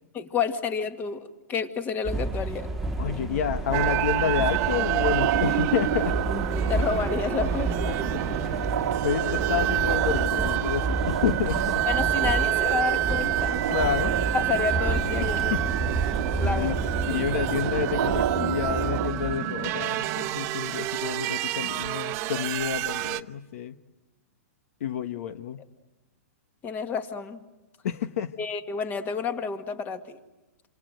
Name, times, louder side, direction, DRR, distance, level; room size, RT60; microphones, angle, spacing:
voice 1, 0.1-2.7 6.7-8.0 11.9-13.6 14.3-15.5 16.4-16.9 26.6-27.4 28.4-30.2, left 6 dB, 20° left, 8 dB, 2.0 m, -30 dB
sound 1, 2.0-19.4, right 2 dB, ahead, 2.0 m, -31 dB
voice 2, 3.0-6.2 8.0-11.9 13.6-14.2 15.4-15.6 16.3-23.8 24.8-25.6 27.8-28.3, left 8 dB, 65° left, 11 dB, 1.2 m, -29 dB
sound 2, 3.7-23.2, right 15 dB, 35° right, 1.0 m, -29 dB
sound 3, 3.7-19.1, right 10 dB, 75° right, 1.2 m, -31 dB
28.5 x 26.5 x 7.9 m, 1.1 s
hypercardioid pair, 145°, 8 cm